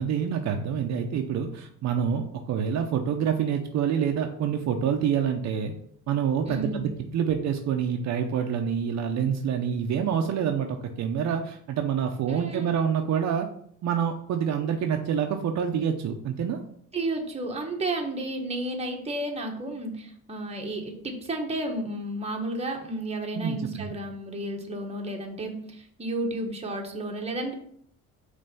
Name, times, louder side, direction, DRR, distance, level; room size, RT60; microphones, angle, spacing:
voice 1, 0.0-5.7 6.1-13.5 13.8-16.6 23.3-23.9, right 8 dB, 60° right, 4 dB, 0.6 m, -27 dB
voice 2, 6.5-6.8 12.3-12.8 16.9-27.5, right 1 dB, 20° right, 1 dB, 1.2 m, -32 dB
5.4 x 3.3 x 5.3 m, 0.65 s
cardioid pair, 115°, 31 cm